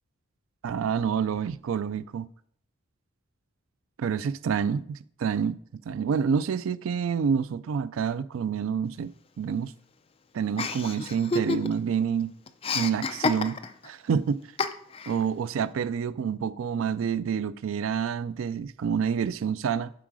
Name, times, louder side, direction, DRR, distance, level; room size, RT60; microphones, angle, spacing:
voice 1, 0.6-2.3 4.0-5.6 5.9-9.1 9.4-9.7 10.3-12.3 12.7-13.6 13.8-14.4 15.1-19.9, right 7 dB, 70° right, 0.3 m, -28 dB
Chuckle chortle, 10.6-11.9 12.2-13.9 14.6-15.2, left 4 dB, 30° left, 0.4 m, -29 dB
7.5 x 4.8 x 4.7 m
head